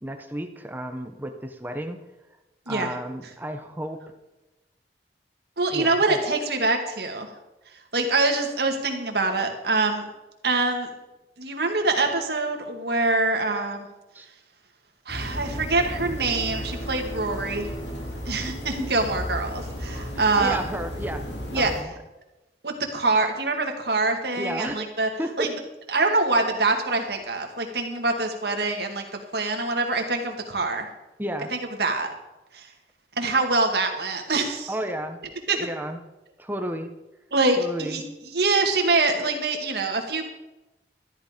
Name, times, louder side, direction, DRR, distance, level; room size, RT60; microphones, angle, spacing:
voice 1, 0.0-2.0 2.7-4.0 5.7-6.2 14.1-14.3 20.1-21.2 21.5-21.9 24.3-24.9 25.2-25.5 31.2-31.5 34.7-35.2 35.5-36.0 36.4-36.9 37.6-38.0, right 1 dB, 10° right, 6 dB, 1.0 m, -32 dB
voice 2, 5.6-7.3 7.9-10.0 10.4-10.9 11.4-13.9 15.1-17.7 18.3-20.6 21.5-21.7 22.6-25.1 25.4-25.5 25.9-30.9 31.8-32.1 32.5-32.7 33.2-34.7 35.5-35.7 37.3-40.2, right 3 dB, 65° right, 4 dB, 2.0 m, -24 dB
sound 1, 15.1-21.8, equal, 85° left, 2.9 m, -34 dB
13.0 x 11.5 x 5.1 m, 1.0 s
head